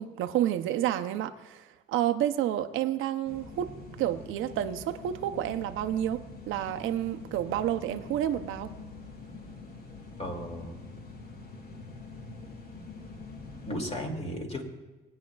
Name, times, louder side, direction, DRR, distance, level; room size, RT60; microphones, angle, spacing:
voice 1, 0.0-8.7, right 11 dB, 90° right, 9 dB, 0.7 m, -30 dB
sound 1, 3.2-14.1, left 3 dB, 50° left, 1.8 m, -45 dB
voice 2, 10.2-10.8 13.7-14.6, equal, 30° left, 1 dB, 2.5 m, -35 dB
20.0 x 9.5 x 2.4 m, 1.2 s
cardioid pair, 90°, 20 cm